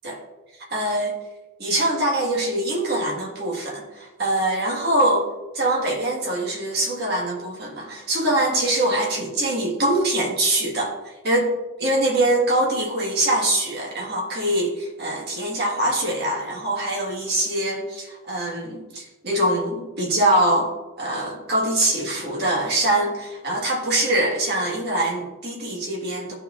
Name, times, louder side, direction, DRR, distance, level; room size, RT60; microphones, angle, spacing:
voice 1, 0.7-1.2 1.6-5.3 5.5-11.5 11.8-20.7 21.0-26.3, right 1 dB, 50° right, -2 dB, 1.7 m, -23 dB
12.0 x 4.5 x 2.5 m, 1.1 s
head